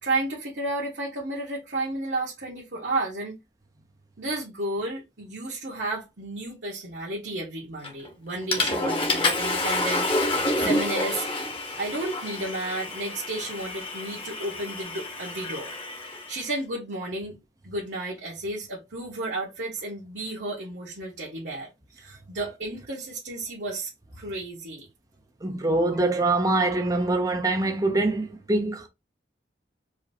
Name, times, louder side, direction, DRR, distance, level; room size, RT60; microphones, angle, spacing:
voice 1, 0.0-3.4 4.2-11.3 11.8-15.7 16.0-17.4 17.6-23.9 24.2-24.8, right 2 dB, 70° right, 1.4 m, -32 dB
Water / Toilet flush, 7.8-8.1 8.5-16.4, left 2 dB, 30° left, 1.2 m, -28 dB
voice 2, 25.4-28.9, right 2 dB, 20° right, 0.6 m, -24 dB
4.9 x 2.9 x 2.8 m
head